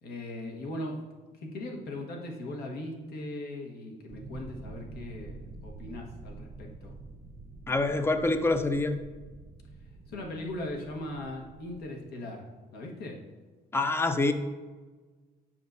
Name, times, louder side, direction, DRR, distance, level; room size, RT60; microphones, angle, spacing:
voice 1, 0.0-1.0 1.3-6.9 10.1-13.2, left 1 dB, 70° left, 1 dB, 1.4 m, -39 dB
sound 1, 4.1-11.9, right 3 dB, 30° right, 0.7 m, -47 dB
voice 2, 7.7-9.0 13.7-14.3, left 2 dB, 15° left, 9 dB, 0.5 m, -26 dB
7.3 x 5.7 x 2.6 m, 1.4 s
cardioid pair, 110°, 17 cm